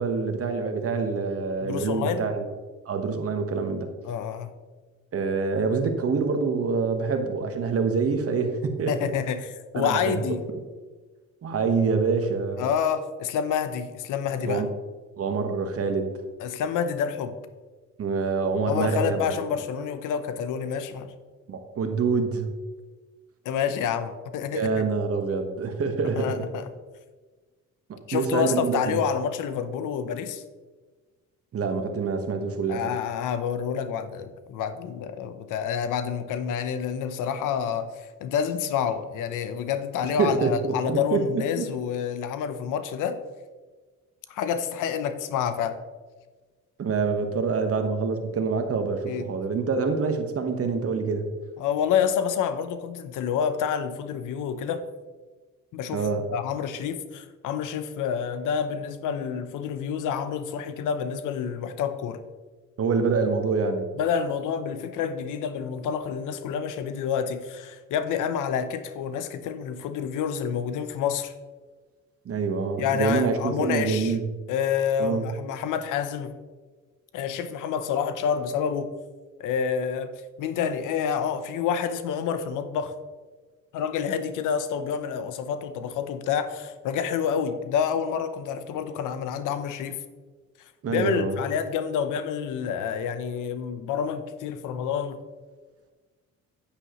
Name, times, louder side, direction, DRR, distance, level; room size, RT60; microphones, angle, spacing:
voice 1, 0.0-2.4 2.8-3.9 5.1-9.1 9.7-10.6 11.4-12.6 14.4-14.7 15.2-16.2 18.0-19.4 21.5-22.5 24.5-26.5 27.9-29.0 31.5-32.9 40.2-41.7 46.8-51.3 55.9-56.3 62.8-63.9 72.2-74.2 75.0-75.3 90.8-91.4, right 4 dB, 50° right, 6 dB, 1.3 m, -26 dB
voice 2, 1.6-2.2 4.1-4.5 8.9-10.5 12.6-14.6 16.4-17.4 18.7-21.1 23.4-24.8 26.2-26.7 28.1-30.4 32.7-43.2 44.3-45.8 49.1-49.3 51.6-54.8 55.7-56.0 56.3-62.2 64.0-71.3 72.8-74.1 74.5-76.4 77.1-78.9 79.4-80.1 80.4-82.9 83.7-90.0 90.9-95.2, left 7 dB, 90° left, 11 dB, 0.8 m, -28 dB
9.6 x 8.8 x 3.0 m, 1.3 s
cardioid pair, 90°, 30 cm